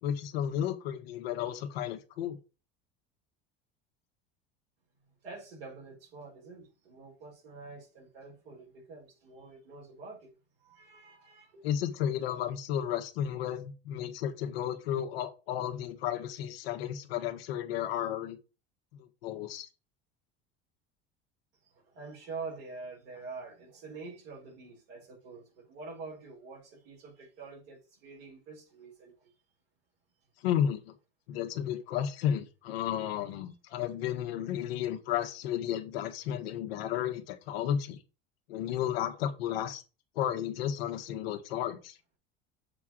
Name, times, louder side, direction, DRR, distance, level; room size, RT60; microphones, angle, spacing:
voice 1, 0.0-2.4 11.6-18.4 19.0-19.7 30.4-30.9 31.3-38.0 38.5-39.8 40.1-42.0, left 10 dB, 80° left, 1.4 m, -33 dB
voice 2, 5.2-10.3 10.6-11.6 21.7-29.3, right 4 dB, 85° right, 4.7 m, -46 dB
7.6 x 3.7 x 6.0 m
hypercardioid pair, 85°, 29 cm